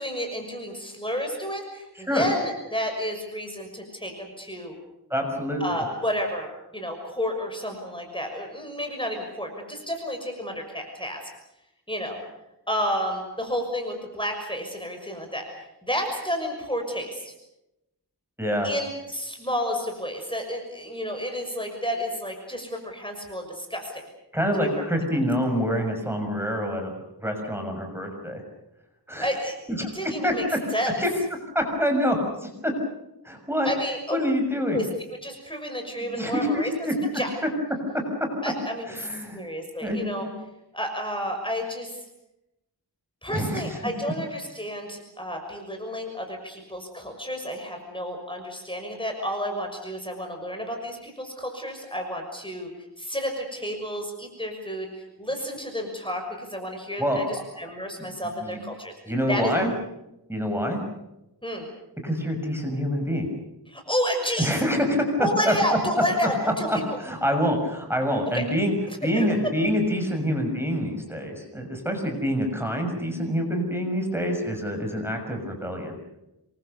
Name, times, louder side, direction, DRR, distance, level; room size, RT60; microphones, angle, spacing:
voice 1, 0.0-4.7 5.6-11.2 11.9-12.2 12.7-17.3 18.6-24.0 24.6-24.8 29.2-29.5 29.9-30.4 30.7-30.9 33.6-34.2 34.7-34.9 35.2-36.7 37.1-37.3 38.4-38.9 39.3-40.3 40.7-42.0 43.2-52.7 53.0-54.9 55.2-58.9 59.3-59.5 61.4-61.6 63.7-64.5 65.2-66.8 68.3-68.4 68.9-69.4, equal, 10° left, 3 dB, 6.3 m, -31 dB
voice 2, 5.1-5.8 18.4-18.7 24.3-26.9 27.2-28.4 29.1-29.3 29.8-29.9 30.2-30.6 31.0-31.1 31.5-32.7 33.2-33.7 34.1-34.8 35.9-36.9 37.9-38.0 38.9-39.4 39.8-40.0 43.3-43.8 57.0-57.2 58.0-58.1 58.4-58.6 59.1-59.7 60.3-60.8 62.0-63.3 64.4-65.0 65.4-65.5 66.7-68.7 69.0-75.9, equal, 5° right, 3 dB, 6.4 m, -26 dB
27.5 x 23.5 x 6.8 m, 0.88 s
wide cardioid pair, 65°, 41 cm